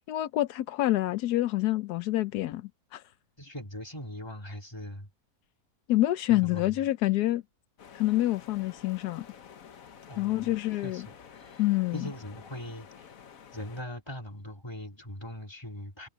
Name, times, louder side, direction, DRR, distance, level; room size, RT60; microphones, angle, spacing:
voice 1, 0.1-3.0 5.9-7.4 7.9-9.3 10.2-11.1 11.6-12.1, left 15 dB, 85° left, 1.2 m, -27 dB
voice 2, 3.4-5.1 6.3-6.6 10.1-10.5 10.8-11.6 11.9-13.1 13.5-16.1, left 1 dB, 15° left, 3.3 m, -41 dB
sound 1, 7.8-13.8, left 7 dB, 60° left, 1.5 m, -50 dB
omnidirectional pair, 1.7 m